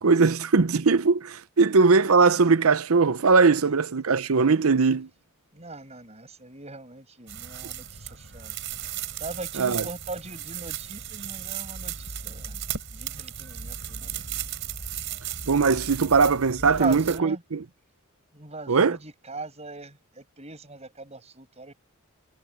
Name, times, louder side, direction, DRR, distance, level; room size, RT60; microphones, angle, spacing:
voice 1, 0.0-5.1 9.6-9.8 15.5-17.6 18.7-19.0, right 4 dB, 75° right, 0.7 m, -20 dB
voice 2, 5.5-8.6 9.2-14.4 16.0-16.2 16.6-17.4 18.3-21.7, right 3 dB, 30° right, 7.5 m, -39 dB
sound 1, 7.3-17.2, right 9 dB, 55° right, 4.7 m, -36 dB
head